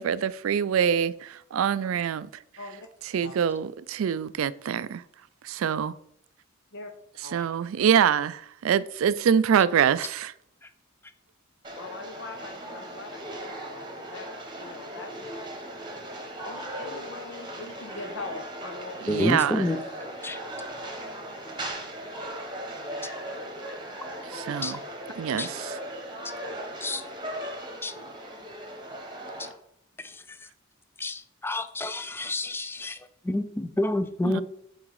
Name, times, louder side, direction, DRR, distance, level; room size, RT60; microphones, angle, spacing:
voice 1, 0.0-2.3 3.1-5.0 5.4-5.9 7.3-10.3 19.0-19.7 24.2-24.8 25.2-25.8 34.2-34.4, right 8 dB, 75° right, 0.3 m, -25 dB
voice 2, 2.6-2.9 3.2-3.3 6.7-6.9 7.2-7.4 11.7-14.3 14.6-15.3 16.4-19.8, left 3 dB, 60° left, 0.7 m, -42 dB
sound 1, 11.6-29.5, right 1 dB, 20° right, 1.2 m, -38 dB
voice 3, 19.1-19.8 20.2-20.4 24.6-24.8 25.4-25.5 26.8-27.0 27.8-27.9 29.4-29.5 30.0-30.4 31.0-33.0 33.2-34.4, left 1 dB, 10° left, 0.4 m, -29 dB
6.1 x 4.0 x 4.8 m
head